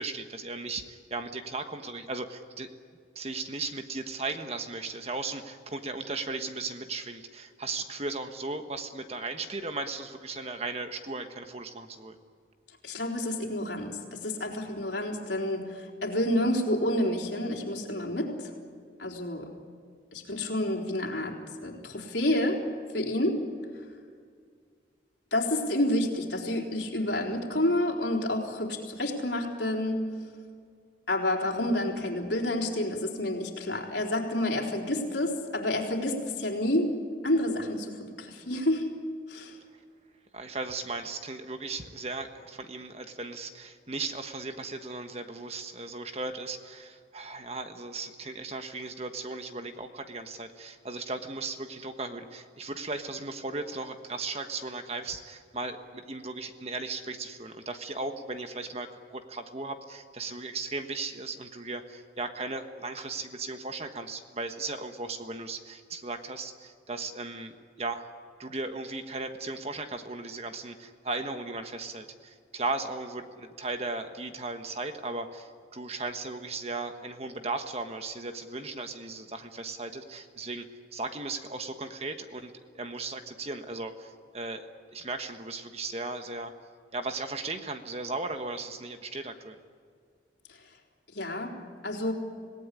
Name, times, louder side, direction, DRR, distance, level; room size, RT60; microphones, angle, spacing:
voice 1, 0.0-2.7 3.1-12.2 40.3-68.1 68.4-80.6 80.9-86.5 86.9-89.6, right 3 dB, 35° right, 7 dB, 1.3 m, -36 dB
voice 2, 12.8-18.5 19.0-19.5 20.1-22.7 22.9-23.5 25.3-30.1 31.1-37.0 37.2-39.0 39.3-39.6 91.1-92.1, left 1 dB, 75° left, 1 dB, 3.9 m, -29 dB
26.5 x 18.0 x 10.0 m, 2.1 s
head